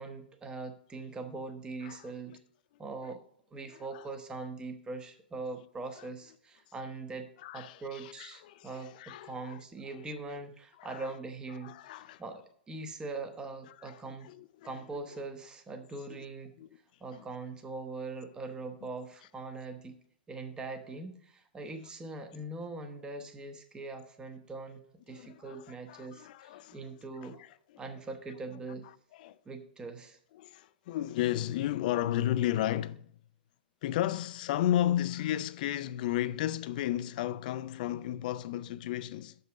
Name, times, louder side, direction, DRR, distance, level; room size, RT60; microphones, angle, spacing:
voice 1, 0.0-2.4 2.8-3.2 3.5-7.3 7.5-11.7 12.2-14.3 14.6-16.5 17.0-20.0 20.3-24.8 25.1-27.4 27.8-28.9 29.5-30.2, right 3 dB, 15° right, 1.1 m, -42 dB
voice 2, 3.7-4.0 6.0-6.1 7.4-9.6 9.9-10.1 10.8-11.1 11.6-12.2 13.7-14.8 15.1-15.2 16.1-16.3 16.6-16.8 17.1-17.3 21.6-21.7 25.1-26.9 27.2-27.8 29.1-29.4 30.3-33.1 33.8-39.4, left 12 dB, 55° left, 0.5 m, -34 dB
6.7 x 5.4 x 6.3 m
hypercardioid pair, 125°, 5 cm